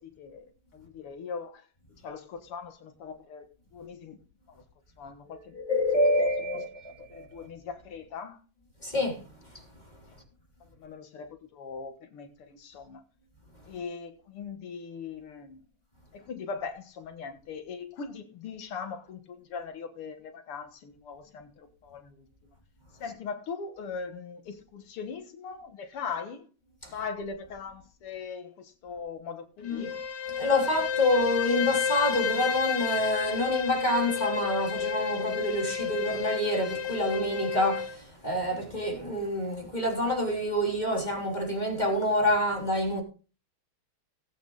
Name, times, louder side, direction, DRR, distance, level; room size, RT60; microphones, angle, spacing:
voice 1, 0.0-1.7 2.0-3.5 3.7-4.2 4.5-4.6 5.0-5.6 7.1-8.4 10.8-13.0 13.7-15.6 16.1-22.3 23.0-26.5 26.9-30.0, left 5 dB, 85° left, 2.4 m, -40 dB
voice 2, 5.3-7.2 8.8-9.2 26.8-26.9 29.6-29.9 30.4-43.0, left 1 dB, 20° left, 3.3 m, -27 dB
Bowed string instrument, 29.6-38.0, left 7 dB, 50° left, 2.1 m, -31 dB
18.0 x 8.6 x 3.9 m
omnidirectional pair, 2.4 m